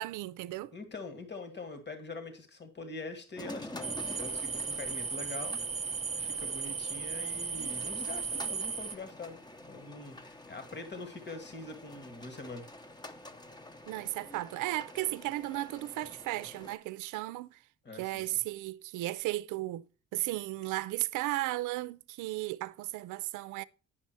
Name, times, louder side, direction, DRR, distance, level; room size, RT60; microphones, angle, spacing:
voice 1, 0.0-0.7 13.9-17.6 17.9-19.8 20.1-23.6, right 17 dB, 90° right, 0.5 m, -35 dB
voice 2, 0.7-5.6 6.2-12.7 17.8-18.2, left 3 dB, 35° left, 1.9 m, -44 dB
sound 1, 3.4-16.8, left 1 dB, 15° left, 0.9 m, -48 dB
sound 2, 3.8-9.0, right 5 dB, 25° right, 0.6 m, -36 dB
9.9 x 5.5 x 4.4 m
cardioid pair, 90°, 30 cm